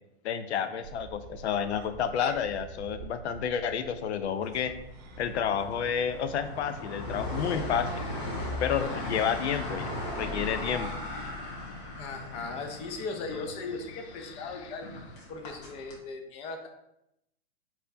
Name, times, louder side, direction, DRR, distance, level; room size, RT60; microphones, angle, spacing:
voice 1, 0.2-4.7 5.2-8.0 8.6-9.9 10.2-10.9 14.2-14.7, left 7 dB, 80° left, 10 dB, 0.6 m, -30 dB
sound 1, 0.8-9.2, right 7 dB, 40° right, 0.5 m, -49 dB
sound 2, 4.5-16.0, left 1 dB, 50° left, 1.5 m, -38 dB
voice 2, 12.0-14.9 15.3-16.7, left 4 dB, 20° left, 5 dB, 0.4 m, -38 dB
4.2 x 4.1 x 2.6 m, 0.82 s
hypercardioid pair, 135°, 33 cm